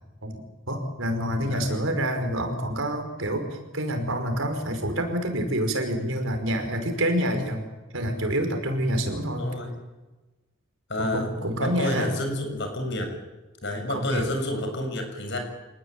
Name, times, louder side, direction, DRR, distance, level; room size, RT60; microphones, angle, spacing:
voice 1, 0.2-7.6 7.9-9.5 11.0-12.1 13.9-14.3, equal, 75° right, 5 dB, 5.5 m, -27 dB
voice 2, 1.5-1.9 9.4-9.7 10.9-13.2 13.6-15.4, left 1 dB, 60° left, 5 dB, 7.1 m, -30 dB
27.0 x 19.5 x 9.1 m, 1.1 s
head